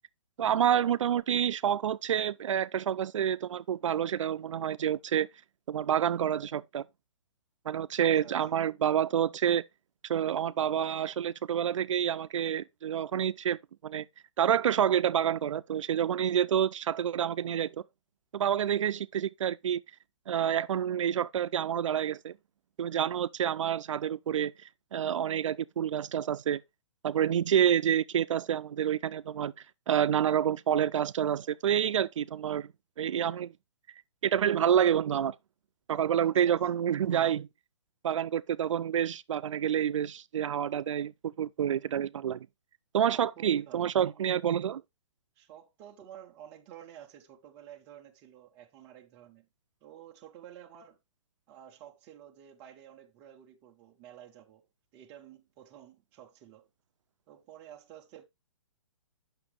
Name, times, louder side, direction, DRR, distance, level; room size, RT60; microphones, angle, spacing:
voice 1, 0.4-5.3 5.7-6.8 7.7-9.6 10.1-14.1 14.4-17.8 18.3-19.8 20.3-22.4 22.8-24.5 24.9-26.6 27.0-29.5 29.9-32.7 33.0-33.5 34.2-35.3 35.9-37.5 38.0-42.5 42.9-44.8, right 9 dB, 75° right, 0.4 m, -28 dB
voice 2, 8.0-8.6 36.2-36.6 43.0-43.9 45.4-49.5 49.8-51.0 51.5-56.7 57.3-58.2, right 10 dB, 10° right, 0.4 m, -51 dB
7.0 x 5.9 x 3.0 m
hypercardioid pair, 170°, 16 cm